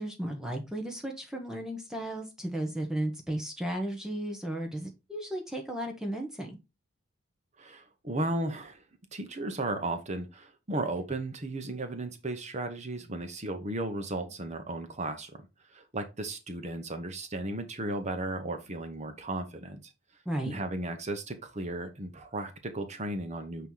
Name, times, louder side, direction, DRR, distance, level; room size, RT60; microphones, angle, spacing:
voice 1, 0.0-6.6 20.2-20.6, right 1 dB, 5° right, 1.0 m, -34 dB
voice 2, 7.6-8.8 9.1-15.5 15.7-19.8 20.4-23.7, right 2 dB, 30° right, 1.0 m, -35 dB
8.8 x 3.0 x 3.9 m
head